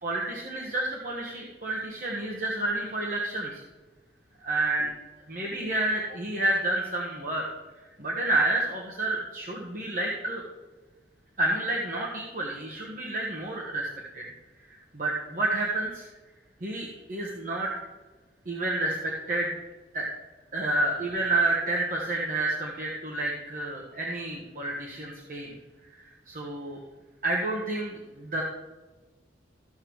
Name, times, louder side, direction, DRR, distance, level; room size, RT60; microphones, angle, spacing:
voice 1, 0.0-3.6 4.4-4.9 5.3-7.5 8.0-10.4 11.4-13.9 14.1-14.3 14.9-16.1 16.6-17.7 18.5-19.5 19.9-20.1 20.5-25.6 26.3-26.8 27.2-28.4, right 2 dB, 50° right, -2 dB, 1.2 m, -29 dB
14.5 x 6.7 x 3.1 m, 1.2 s
head